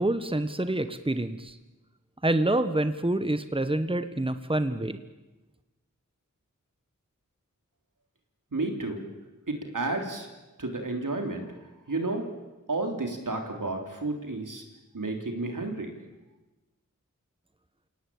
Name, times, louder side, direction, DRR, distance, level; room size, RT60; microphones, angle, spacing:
voice 1, 0.0-1.6 2.2-5.0, right 1 dB, 15° right, 10 dB, 1.4 m, -27 dB
voice 2, 8.5-9.0 9.5-10.3 10.6-11.5 11.9-12.2 12.7-14.6 14.9-15.9, right 2 dB, 90° right, 4 dB, 3.5 m, -31 dB
28.0 x 17.5 x 8.7 m, 1.1 s
wide cardioid pair, 40°, 31 cm